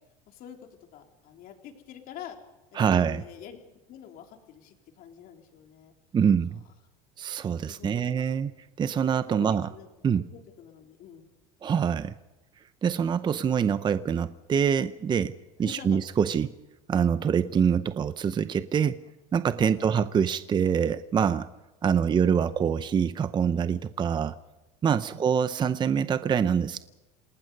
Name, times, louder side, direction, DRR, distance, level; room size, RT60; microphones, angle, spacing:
voice 1, 0.3-0.6 0.9-2.4 2.7-3.6 3.9-5.9 7.5-8.3 9.0-9.1 9.4-9.9 10.3-11.3 15.6-16.0 19.6-20.1 21.9-22.4 25.0-25.3, left 9 dB, 50° left, 3 dB, 3.6 m, -46 dB
voice 2, 2.8-3.2 6.1-6.6 7.2-8.5 8.8-9.7 10.0-10.3 11.6-12.1 12.8-15.3 15.6-16.5 16.9-19.0 19.3-21.5 21.8-24.4 24.8-26.8, right 7 dB, 25° right, 13 dB, 0.7 m, -25 dB
28.5 x 19.0 x 5.4 m, 1.0 s
supercardioid pair, 125°, 19 cm